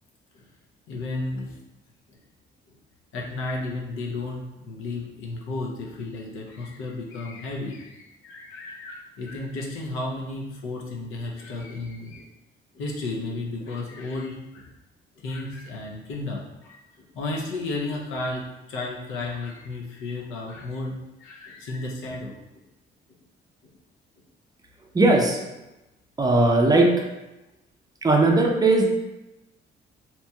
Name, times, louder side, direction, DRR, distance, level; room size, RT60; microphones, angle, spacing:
voice 1, 0.9-1.6 2.1-2.2 3.1-12.3 12.7-14.7 15.2-22.3, left 2 dB, 90° left, -2 dB, 0.6 m, -33 dB
voice 2, 24.9-25.4 26.2-26.9 28.0-28.9, right 2 dB, 20° right, 1 dB, 0.4 m, -18 dB
2.9 x 2.7 x 2.3 m, 0.97 s
cardioid pair, 90°, 20 cm